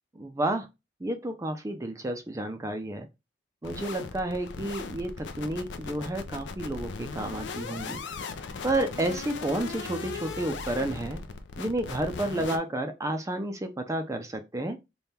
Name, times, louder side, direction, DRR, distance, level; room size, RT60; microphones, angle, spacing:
voice 1, 0.1-0.7 1.0-3.1 3.6-8.0 8.6-11.2 11.6-14.8, right 1 dB, 15° right, 0.4 m, -31 dB
sound 1, 3.6-12.6, left 4 dB, 65° left, 0.5 m, -38 dB
3.5 x 2.3 x 4.1 m
head